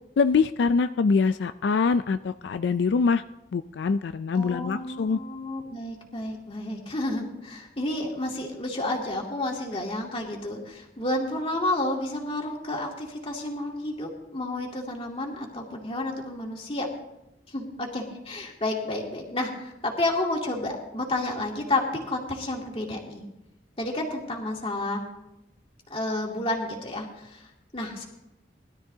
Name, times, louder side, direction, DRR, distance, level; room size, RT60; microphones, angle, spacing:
voice 1, 0.2-3.2 3.5-5.2, left 5 dB, 80° left, 11 dB, 0.4 m, -24 dB
voice 2, 4.3-16.9 17.5-23.2 23.8-25.0 25.9-27.5 27.7-28.1, left 2 dB, 30° left, -1 dB, 2.4 m, -31 dB
21.0 x 12.5 x 2.8 m, 0.92 s
head